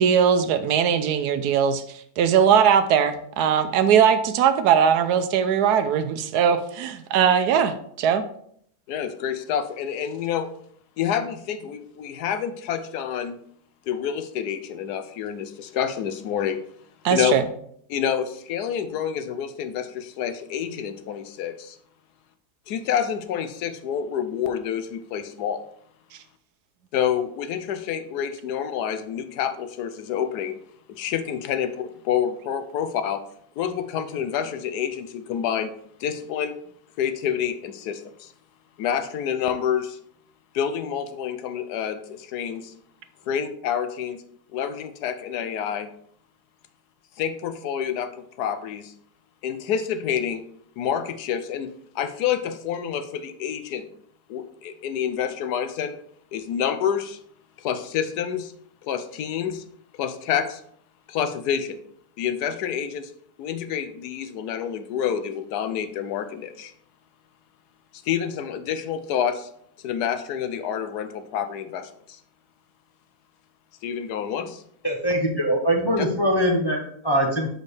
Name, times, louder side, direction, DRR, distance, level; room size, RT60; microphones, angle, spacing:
voice 1, 0.0-1.8 2.2-8.2 17.0-17.4, right 8 dB, 75° right, 10 dB, 1.1 m, -20 dB
voice 2, 8.9-10.5 11.0-13.4 13.9-16.6 17.1-17.3 17.9-21.8 22.7-25.6 26.9-30.5 30.9-33.2 33.6-35.7 36.0-36.6 37.0-38.3 38.8-40.0 40.5-42.7 43.3-44.2 44.5-45.9 47.2-48.1 48.4-48.9 49.4-50.4 50.8-53.9 54.3-56.0 56.3-57.2 57.6-58.5 58.8-59.6 59.9-60.6 61.1-61.8 62.2-63.1 63.4-66.7 67.9-69.5 69.8-72.2 73.8-74.6 76.0-76.1, left 8 dB, 80° left, 9 dB, 1.2 m, -28 dB
voice 3, 74.8-77.5, equal, 30° left, -1 dB, 0.4 m, -22 dB
6.5 x 5.2 x 3.2 m, 0.66 s
omnidirectional pair, 1.7 m